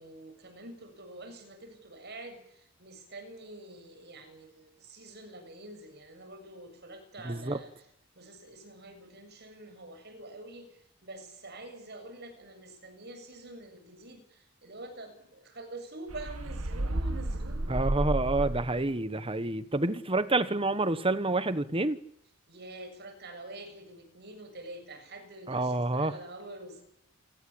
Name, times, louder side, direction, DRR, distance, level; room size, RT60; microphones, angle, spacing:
voice 1, 0.0-7.8 8.2-17.8 22.5-26.8, right 2 dB, 50° right, 7.3 m, -46 dB
voice 2, 7.2-7.6 17.7-22.0 25.5-26.1, right 2 dB, 25° right, 1.3 m, -28 dB
sound 1, 16.1-18.9, right 1 dB, 75° right, 1.5 m, -32 dB
28.5 x 18.5 x 8.8 m
head